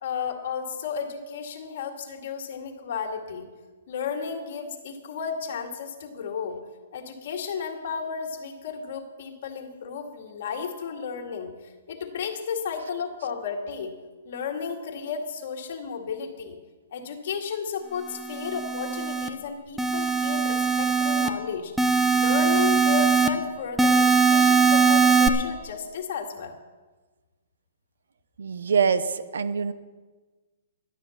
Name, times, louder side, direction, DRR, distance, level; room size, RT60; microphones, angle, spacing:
voice 1, 0.0-3.5 3.9-6.6 6.9-11.5 11.9-13.9 14.3-16.6 16.9-21.7 22.1-26.5, left 6 dB, 55° left, 2 dB, 2.2 m, -33 dB
sound 1, 18.2-19.3 19.8-21.3 21.8-23.3 23.8-25.3, right 5 dB, 5° right, 0.7 m, -21 dB
voice 2, 28.4-29.7, right 6 dB, 85° right, 13 dB, 0.9 m, -24 dB
12.0 x 9.4 x 7.2 m, 1.3 s
hypercardioid pair, 155°, 0 cm